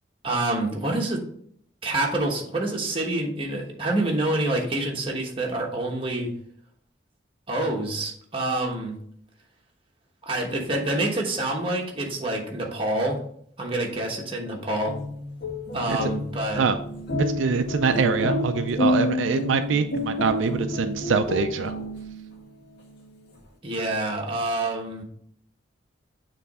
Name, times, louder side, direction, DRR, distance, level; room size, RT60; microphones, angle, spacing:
voice 1, 0.2-1.2 1.8-6.3 7.5-9.0 10.3-13.2 13.6-15.0 15.7-16.6 23.6-25.0, right 2 dB, 30° right, 0 dB, 1.1 m, -27 dB
sound 1, 14.7-22.3, left 1 dB, 55° left, 1.2 m, -29 dB
voice 2, 17.4-21.7, right 5 dB, 80° right, 8 dB, 0.4 m, -24 dB
6.9 x 3.1 x 4.8 m, 0.64 s
head